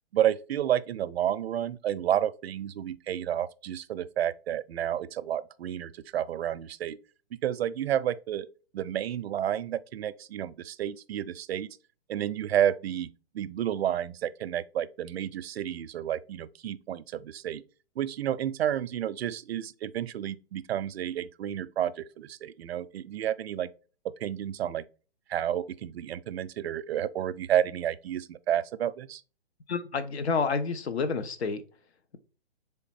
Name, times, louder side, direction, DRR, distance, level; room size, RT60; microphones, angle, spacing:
voice 1, 0.1-7.0 7.3-8.5 8.7-11.8 12.1-13.1 13.3-17.6 18.0-23.7 24.2-24.8 25.3-29.2, right 10 dB, 70° right, 0.5 m, -30 dB
voice 2, 29.7-31.6, left 5 dB, 80° left, 0.8 m, -29 dB
3.5 x 3.5 x 4.1 m
hypercardioid pair, 155°, 32 cm